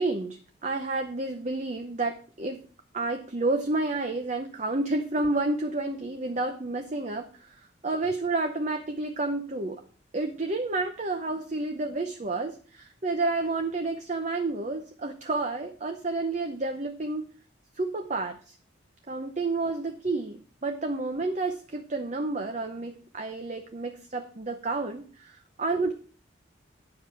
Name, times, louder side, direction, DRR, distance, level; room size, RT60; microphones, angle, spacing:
voice 1, 0.0-2.6 2.9-9.8 10.1-17.3 17.7-18.5 19.1-25.9, right 2 dB, 40° right, 5 dB, 0.7 m, -30 dB
9.9 x 6.7 x 4.6 m, 0.40 s
head